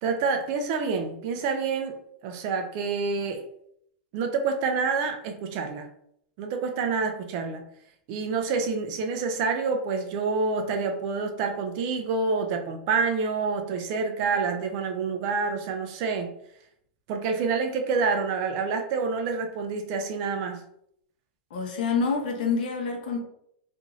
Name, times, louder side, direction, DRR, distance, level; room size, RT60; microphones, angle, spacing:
voice 1, 0.0-2.0 2.2-3.5 4.1-5.9 6.4-7.6 8.1-16.3 17.1-20.6, right 4 dB, 35° right, 0.3 m, -27 dB
voice 2, 21.5-23.2, left 5 dB, 55° left, 0.8 m, -27 dB
2.5 x 2.4 x 3.0 m
supercardioid pair, 165°, 6 cm